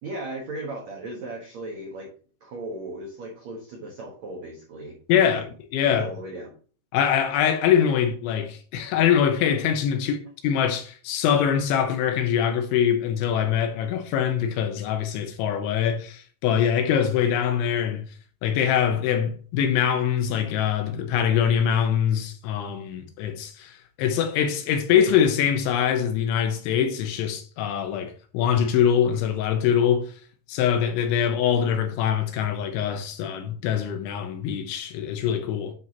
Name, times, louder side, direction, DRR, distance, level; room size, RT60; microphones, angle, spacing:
voice 1, 0.0-2.1 2.4-4.9 5.3-5.4 5.8-6.5, right 2 dB, 90° right, 1.5 m, -36 dB
voice 2, 5.1-6.1 6.9-18.0 18.4-30.1 30.5-35.7, left 8 dB, 75° left, 3.2 m, -23 dB
9.1 x 6.3 x 2.9 m
omnidirectional pair, 5.7 m